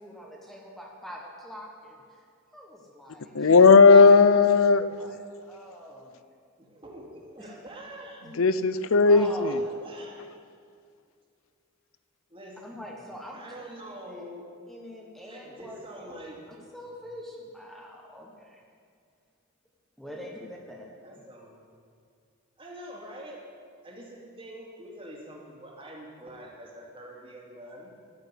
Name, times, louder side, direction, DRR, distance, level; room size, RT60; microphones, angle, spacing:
voice 1, 0.0-2.2 2.5-4.4 5.0-6.1 7.4-7.5 8.2-8.4 9.0-9.7 12.6-13.7 14.1-14.2 14.7-16.1 16.5-18.6 20.0-21.0, equal, ahead, -1 dB, 1.4 m, -43 dB
voice 2, 3.3-4.9 8.4-9.5, left 4 dB, 80° left, 14 dB, 0.7 m, -16 dB
voice 3, 6.6-8.3 9.1-10.4 12.3-12.6 13.3-14.4 15.2-16.4 16.7-16.8 20.3-20.4 21.0-21.6 22.6-23.4 23.8-27.9, right 1 dB, 25° right, -1 dB, 2.5 m, -45 dB
13.0 x 7.4 x 9.8 m, 2.3 s
head